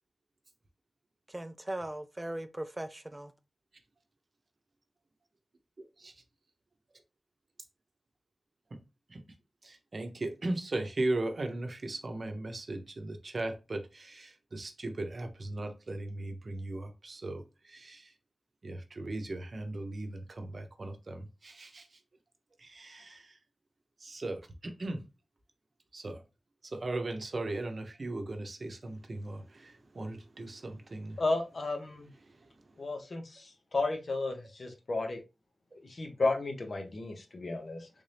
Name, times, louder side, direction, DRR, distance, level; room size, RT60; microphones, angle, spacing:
voice 1, 1.3-3.3, right 1 dB, 20° right, 0.3 m, -39 dB
voice 2, 5.8-6.1 8.7-8.8 9.1-9.2 9.6-18.1 18.6-22.0 22.6-23.4 24.0-25.0 25.9-26.2 26.6-31.2 32.3-32.5, right 2 dB, 55° right, 0.7 m, -38 dB
voice 3, 31.2-32.1 32.8-35.2 35.7-37.9, left 3 dB, 65° left, 0.8 m, -33 dB
3.5 x 2.7 x 3.3 m
cardioid pair, 50°, 0 cm